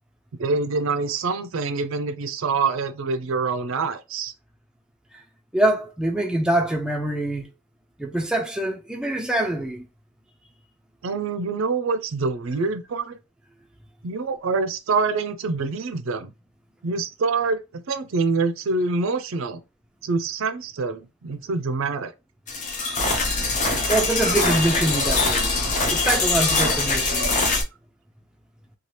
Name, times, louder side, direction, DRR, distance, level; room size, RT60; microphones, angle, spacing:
voice 1, 0.4-4.3 11.0-13.2 14.0-16.3 16.8-19.6 20.0-22.1, right 4 dB, 65° right, 0.4 m, -25 dB
voice 2, 5.5-7.5 8.0-9.8 23.9-25.5 25.9-27.4, right 1 dB, 5° right, 0.4 m, -24 dB
sound 1, 22.5-27.6, left 3 dB, 35° left, 0.7 m, -22 dB
2.8 x 2.3 x 3.1 m
head